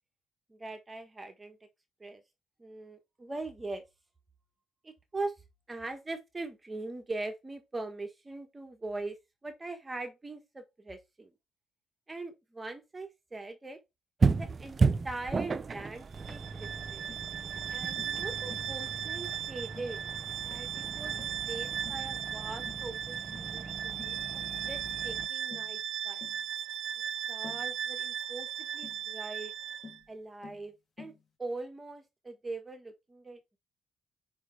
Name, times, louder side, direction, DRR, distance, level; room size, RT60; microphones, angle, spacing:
voice 1, 0.5-1.6 2.0-2.2 2.6-3.8 4.8-5.3 5.7-9.2 9.4-11.3 12.1-13.8 14.4-17.0 17.7-20.0 20.4-26.3 27.3-29.5 30.1-31.1 31.4-33.6, right 2 dB, 20° right, 1.4 m, -41 dB
sound 1, 14.2-25.3, right 4 dB, 35° right, 0.6 m, -34 dB
Bowed string instrument, 16.1-30.0, right 9 dB, 80° right, 0.5 m, -37 dB
Tap, 16.3-16.5 17.1-17.3 18.0-18.2 18.5-18.7 19.2-19.4 19.7-20.0 20.5-20.7 21.2-21.4 21.8-22.1 22.7-22.9 23.3-23.6 24.0-24.2 24.6-24.8 25.5-25.8 26.2-26.4 27.4-27.7 28.8-29.0 29.8-30.1 30.4-30.7 31.0-31.2, left 5 dB, 45° left, 2.3 m, -50 dB
5.1 x 4.7 x 4.5 m
cardioid pair, 90°, 0 cm